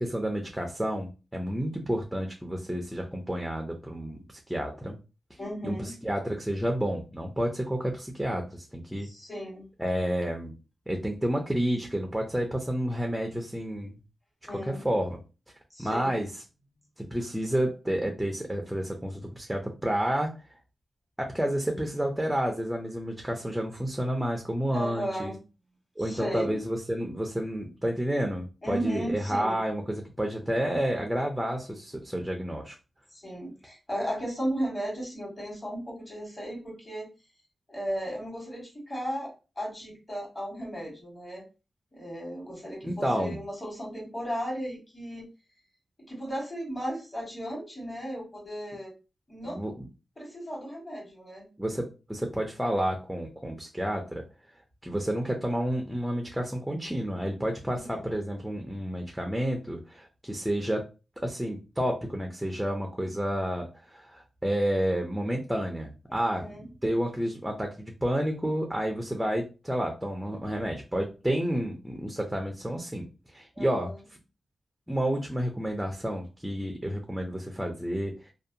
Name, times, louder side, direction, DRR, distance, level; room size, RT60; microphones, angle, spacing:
voice 1, 0.0-5.0 5.6-9.1 9.8-10.5 10.9-14.0 14.5-15.2 15.8-16.3 17.0-20.4 21.2-25.3 26.0-32.8 42.8-43.4 49.5-49.9 51.6-54.2 54.8-60.9 61.2-66.5 66.8-73.9 74.9-78.3, equal, 5° right, 2 dB, 0.4 m, -30 dB
voice 2, 5.4-5.9 9.0-9.7 14.5-14.8 15.7-16.2 24.7-25.4 26.0-26.6 28.6-29.6 33.1-37.1 37.7-41.4 41.9-45.2 46.0-48.9 49.3-49.6 50.2-51.5 57.6-58.1 66.1-66.7 73.5-73.9, equal, 25° left, -3 dB, 1.5 m, -35 dB
2.6 x 2.2 x 2.6 m, 0.31 s
wide cardioid pair, 110°, 0 cm